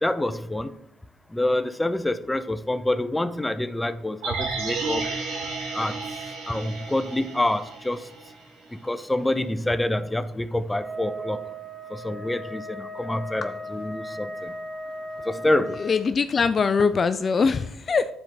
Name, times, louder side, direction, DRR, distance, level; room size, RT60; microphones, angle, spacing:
voice 1, 0.0-0.7 1.3-5.1 5.7-6.0 6.5-8.0 8.8-11.4 11.9-14.5 15.3-15.8, left 1 dB, 10° left, 11 dB, 0.6 m, -26 dB
sound 1, 4.2-8.4 8.7-8.8, right 4 dB, 80° right, 2.0 m, -32 dB
Wind instrument woodwind instrument, 10.7-16.1, equal, 15° right, 1.5 m, -37 dB
voice 2, 15.8-18.1, left 5 dB, 40° left, 11 dB, 0.3 m, -22 dB
9.9 x 4.4 x 4.0 m, 0.76 s
hypercardioid pair, 60°, 0 cm